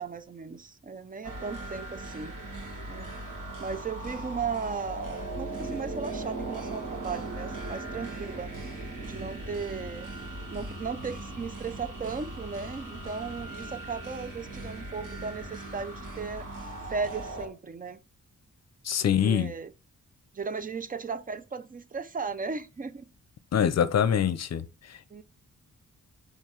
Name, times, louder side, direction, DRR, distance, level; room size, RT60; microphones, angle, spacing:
voice 1, 0.0-2.3 2.9-3.1 3.6-8.5 9.0-10.1 10.5-16.4 16.9-18.0 19.2-19.7 20.3-23.1 25.1-25.2, right 5 dB, 30° right, 0.4 m, -36 dB
sound 1, 1.2-17.5, right 2 dB, 75° right, 1.8 m, -38 dB
voice 2, 18.8-19.5 23.5-24.6 24.9-25.0, left 8 dB, 55° left, 0.6 m, -24 dB
6.6 x 3.3 x 4.5 m
wide cardioid pair, 145°, 32 cm